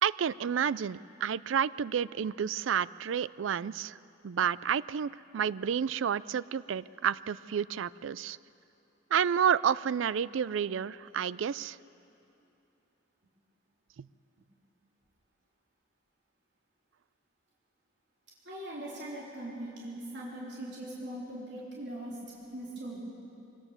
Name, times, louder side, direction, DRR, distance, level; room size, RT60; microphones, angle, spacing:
voice 1, 0.0-4.0 4.2-8.4 9.1-11.8 14.0-14.1, right 8 dB, 90° right, 19 dB, 0.4 m, -30 dB
voice 2, 18.4-22.2 22.5-23.0, right 1 dB, 65° right, -5 dB, 3.7 m, -40 dB
23.5 x 17.5 x 7.2 m, 2.7 s
head